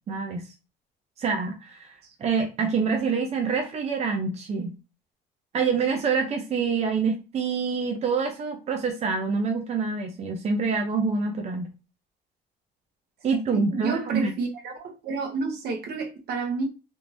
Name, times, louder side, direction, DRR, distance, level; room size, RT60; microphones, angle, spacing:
voice 1, 0.1-0.4 1.2-1.9 2.2-4.7 5.5-11.7 13.2-14.3, right 5 dB, 40° right, 0.6 m, -26 dB
voice 2, 13.5-16.6, right 4 dB, 70° right, 1.1 m, -30 dB
3.5 x 3.1 x 2.6 m
cardioid pair, 110°, 17 cm